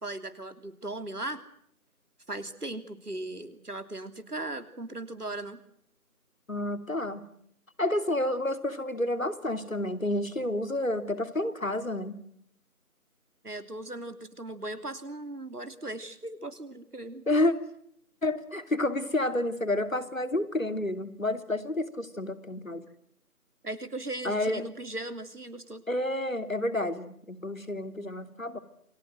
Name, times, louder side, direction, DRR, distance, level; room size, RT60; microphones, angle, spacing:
voice 1, 0.0-1.4 2.3-5.6 13.4-17.2 23.6-25.8, right 2 dB, 80° right, 11 dB, 3.2 m, -38 dB
voice 2, 6.5-7.3 7.8-12.2 17.3-17.5 18.2-22.8 24.2-24.6 25.9-28.6, left 1 dB, 60° left, 11 dB, 3.1 m, -29 dB
28.5 x 21.5 x 7.8 m, 0.71 s
figure-of-eight pair, 175°, 45 cm